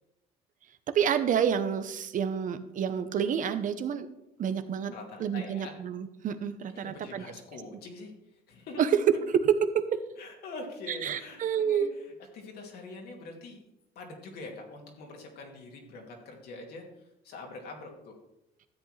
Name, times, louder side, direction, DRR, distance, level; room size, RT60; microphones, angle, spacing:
voice 1, 0.9-4.1 4.4-4.9 5.2-7.2 8.8-8.9 9.9-10.0 10.9-11.9, right 8 dB, 50° right, 10 dB, 0.9 m, -29 dB
voice 2, 4.9-5.7 6.7-8.1 8.5-9.4 10.2-13.6 14.0-16.8 17.2-18.2, left 2 dB, 70° left, 1 dB, 2.3 m, -44 dB
13.0 x 8.1 x 3.3 m, 0.86 s
cardioid pair, 110°, 17 cm